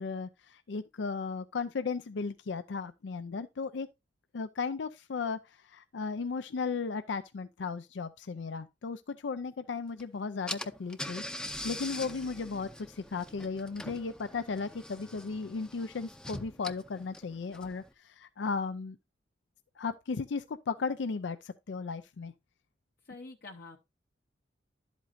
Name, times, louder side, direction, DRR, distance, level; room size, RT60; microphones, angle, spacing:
voice 1, 0.0-3.9 4.3-11.2 11.6-19.0 19.8-22.3, left 4 dB, 80° left, 0.5 m, -35 dB
Car / Engine, 10.0-10.1 10.5-17.9, left 1 dB, 5° left, 0.6 m, -43 dB
voice 2, 23.0-23.8, left 3 dB, 60° left, 0.9 m, -46 dB
11.0 x 8.1 x 2.6 m
head